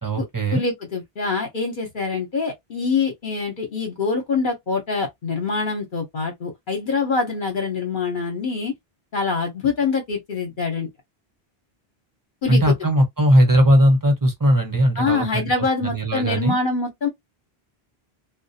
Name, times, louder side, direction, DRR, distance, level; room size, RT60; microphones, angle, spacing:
voice 1, 0.0-0.6 12.5-15.5 15.8-16.6, equal, 20° right, 0.8 m, -18 dB
voice 2, 0.5-8.7 9.1-10.9 12.4-12.7 15.0-17.1, left 4 dB, 55° left, 0.9 m, -25 dB
2.3 x 2.1 x 2.7 m
omnidirectional pair, 1.1 m